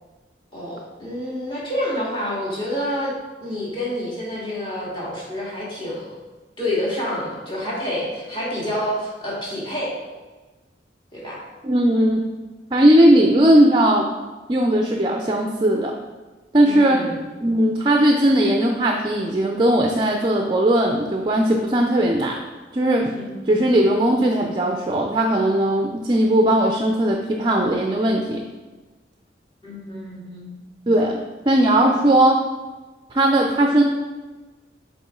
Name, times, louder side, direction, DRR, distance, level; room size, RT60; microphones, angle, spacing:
voice 1, 0.5-3.1 3.4-6.1 6.6-9.9 11.1-11.4 16.6-17.2 23.1-23.7 29.6-30.6 31.9-32.0, left 1 dB, 25° left, -7 dB, 2.1 m, -28 dB
voice 2, 11.6-12.2 12.7-14.1 14.5-15.9 16.5-17.0 17.4-22.4 22.7-23.1 23.5-28.4 30.9-31.2 31.5-32.4 33.1-33.8, right 1 dB, 25° right, 1 dB, 0.4 m, -18 dB
7.0 x 4.2 x 3.7 m, 1.2 s
head